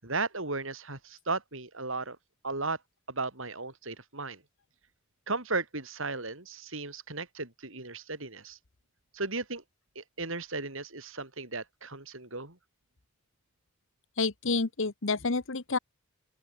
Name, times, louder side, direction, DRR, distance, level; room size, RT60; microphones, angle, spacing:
voice 1, 0.0-2.2 2.4-2.8 3.1-4.4 5.3-8.6 9.1-9.6 10.0-12.6, right 3 dB, 65° right, 6.0 m, -35 dB
voice 2, 14.2-15.8, left 3 dB, 65° left, 1.3 m, -29 dB
open air
head